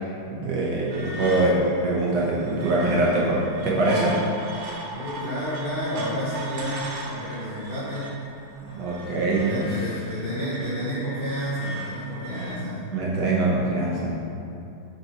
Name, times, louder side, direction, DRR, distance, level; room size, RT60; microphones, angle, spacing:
voice 1, 0.3-4.2 8.6-9.7 12.9-14.2, right 2 dB, 65° right, -5 dB, 1.4 m, -23 dB
sound 1, 0.9-12.6, right 1 dB, 85° right, 1.8 m, -38 dB
voice 2, 2.8-3.3 4.9-8.1 9.4-12.9, equal, 45° left, -10 dB, 0.7 m, -31 dB
6.2 x 5.2 x 2.9 m, 2.7 s
omnidirectional pair, 2.4 m